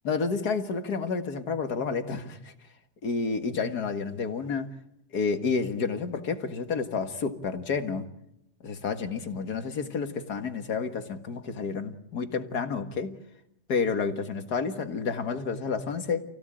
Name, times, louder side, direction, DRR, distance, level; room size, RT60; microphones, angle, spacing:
voice 1, 0.1-2.5 3.0-4.7 5.1-8.1 8.6-13.2 13.7-16.2, left 5 dB, 80° left, 2.3 m, -30 dB
29.0 x 17.0 x 8.9 m
omnidirectional pair, 1.7 m